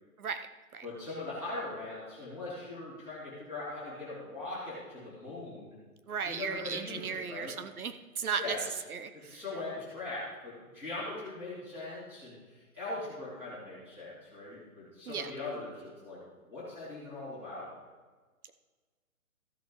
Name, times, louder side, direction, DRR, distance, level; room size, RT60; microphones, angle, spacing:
voice 1, 0.8-5.7 6.2-7.5 8.4-8.6 9.1-16.2 16.5-17.7, left 2 dB, 5° right, -11 dB, 2.9 m, -40 dB
voice 2, 6.1-8.6 8.9-9.4 15.1-15.3, right 6 dB, 75° right, 9 dB, 0.9 m, -36 dB
15.5 x 7.0 x 3.1 m, 1.4 s
hypercardioid pair, 180°, 43 cm